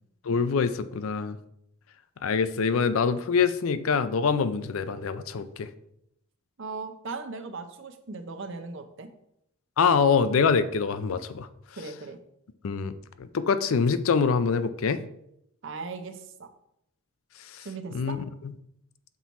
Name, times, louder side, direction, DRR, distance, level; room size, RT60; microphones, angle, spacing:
voice 1, 0.3-1.4 2.2-5.7 9.8-11.5 12.6-15.0 17.4-17.7 17.9-18.2, left 5 dB, 65° left, 12 dB, 0.4 m, -25 dB
voice 2, 6.6-9.1 11.8-12.2 15.6-16.5 17.6-18.2, right 4 dB, 55° right, 8 dB, 0.7 m, -38 dB
6.0 x 4.5 x 4.1 m, 0.77 s
head